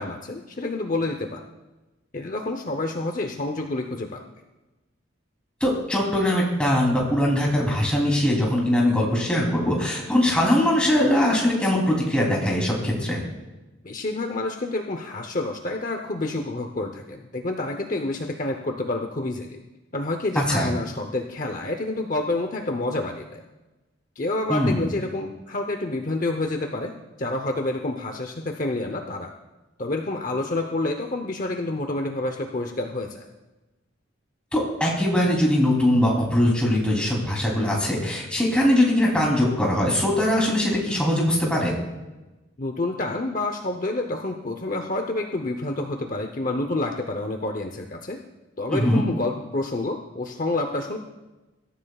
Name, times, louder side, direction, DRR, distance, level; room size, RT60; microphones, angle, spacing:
voice 1, 0.0-1.4 2.1-4.2 13.8-19.6 19.9-23.4 24.2-29.3 29.8-33.2 42.6-48.2 48.6-51.0, left 2 dB, 40° left, 4 dB, 0.8 m, -28 dB
voice 2, 5.6-13.2 20.3-20.7 24.5-24.8 34.5-41.7 48.7-49.0, left 1 dB, 5° left, -3 dB, 3.1 m, -21 dB
24.0 x 13.5 x 2.4 m, 1.1 s
head